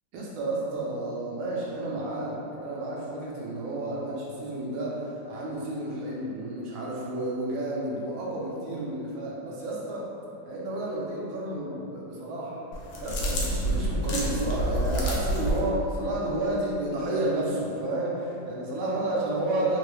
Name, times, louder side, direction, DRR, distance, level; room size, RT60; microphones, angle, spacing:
voice 1, 0.1-10.1 10.4-12.6 13.0-19.8, right 1 dB, 90° right, -5 dB, 1.5 m, -31 dB
sound 1, 12.7-15.6, right 1 dB, 85° left, 0.8 m, -28 dB
3.6 x 2.2 x 3.0 m, 2.8 s
omnidirectional pair, 2.1 m